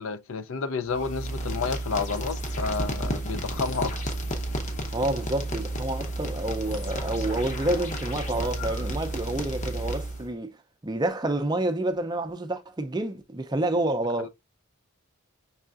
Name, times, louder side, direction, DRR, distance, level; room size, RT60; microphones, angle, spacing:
voice 1, 0.0-3.9, left 4 dB, 65° left, 0.5 m, -30 dB
sound 1, 0.9-10.3, right 1 dB, 35° left, 0.8 m, -32 dB
voice 2, 4.9-10.6 10.8-14.3, right 1 dB, 20° right, 0.4 m, -28 dB
5.5 x 3.5 x 2.4 m
head